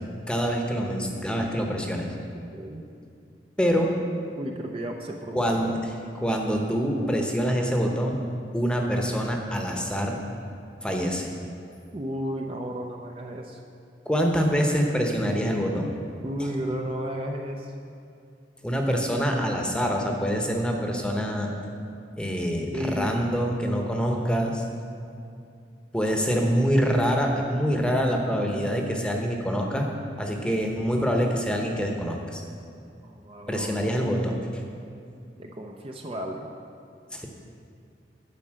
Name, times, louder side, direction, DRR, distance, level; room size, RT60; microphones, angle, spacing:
voice 1, 0.3-2.1 3.6-3.9 5.3-5.7 6.1-8.2 8.5-10.2 10.8-11.3 14.1-16.0 16.4-16.5 18.6-21.5 22.2-24.6 25.9-29.9 30.2-32.4 33.5-34.6 37.1-37.3, equal, 5° left, 1 dB, 0.9 m, -25 dB
voice 2, 2.3-2.8 4.4-5.8 11.9-13.6 16.2-17.7 22.7-23.4 23.9-24.4 33.0-33.8 35.4-36.6, equal, 30° right, 2 dB, 0.6 m, -34 dB
11.0 x 5.5 x 7.5 m, 2.5 s
head